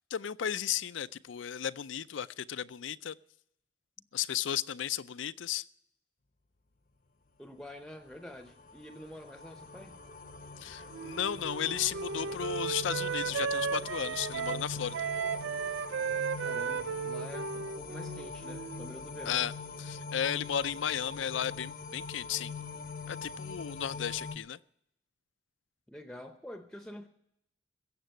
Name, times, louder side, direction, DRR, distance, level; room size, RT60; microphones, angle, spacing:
voice 1, 0.1-3.2 4.1-5.7 10.6-15.0 19.3-19.5 19.8-22.5 23.1-24.6, left 9 dB, 85° left, 16 dB, 0.5 m, -34 dB
voice 2, 7.4-10.0 16.4-19.5 25.9-27.1, left 1 dB, 5° left, 6 dB, 0.7 m, -47 dB
sound 1, 8.1-24.4, left 3 dB, 45° left, 0.7 m, -43 dB
Wind instrument woodwind instrument, 10.9-18.9, right 6 dB, 90° right, 0.4 m, -35 dB
16.0 x 7.4 x 9.1 m, 0.76 s
head